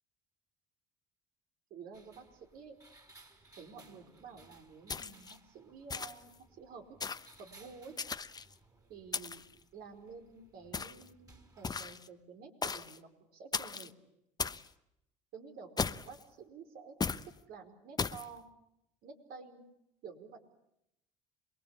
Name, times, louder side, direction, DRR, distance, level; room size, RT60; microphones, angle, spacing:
voice 1, 1.7-2.8 3.6-7.0 7.4-8.0 8.9-9.4 9.7-13.9 15.3-17.0 17.5-18.5 19.0-19.6 20.0-20.4, right 5 dB, 65° right, 5 dB, 5.0 m, -51 dB
sound 1, 1.9-11.8, right 2 dB, 20° right, 4.3 m, -62 dB
sound 2, 4.9-5.4 5.9-6.3 7.0-7.4 8.0-8.5 9.1-9.5 10.7-11.1 11.6-12.1 12.6-13.0 13.5-13.9 14.4-14.7 15.8-16.2 17.0-17.3 18.0-18.3, left 5 dB, 25° left, 1.0 m, -36 dB
28.0 x 21.5 x 8.4 m, 0.82 s
supercardioid pair, 75°, 17 cm